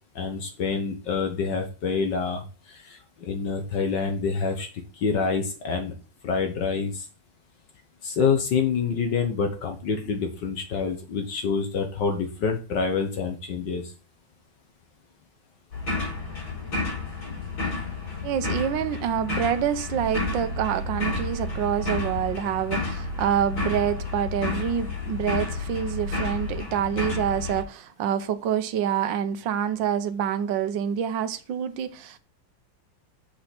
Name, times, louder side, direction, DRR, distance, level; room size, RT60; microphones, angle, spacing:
voice 1, 0.1-4.7 5.0-5.9 6.2-7.1 8.0-13.9, left 5 dB, 65° left, 1.7 m, -27 dB
sound 1, 15.7-27.6, left 3 dB, 80° left, 4.4 m, -31 dB
voice 2, 18.2-32.2, right 9 dB, 75° right, 1.5 m, -27 dB
6.9 x 5.4 x 5.9 m
omnidirectional pair, 2.2 m